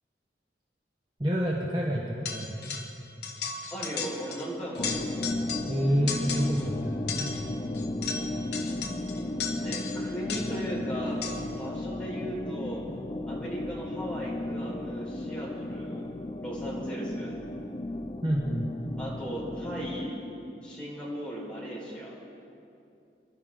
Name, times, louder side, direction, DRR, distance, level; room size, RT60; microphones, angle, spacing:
voice 1, 1.2-2.7 5.7-7.2 18.2-18.7, equal, 25° right, -2 dB, 1.1 m, -28 dB
sound 1, 2.3-3.0 3.2-4.5 4.7-5.8 6.1-6.7 7.1-10.7 11.2-11.6, left 6 dB, 65° left, 1.2 m, -36 dB
voice 2, 3.7-5.2 9.2-11.3 11.6-12.9 13.3-16.0 16.4-17.3 19.0-20.2 20.6-22.2, right 1 dB, 5° left, -6 dB, 4.3 m, -37 dB
sound 2, 4.8-20.1, left 1 dB, 30° left, 0.4 m, -34 dB
25.0 x 12.0 x 3.8 m, 2.7 s
head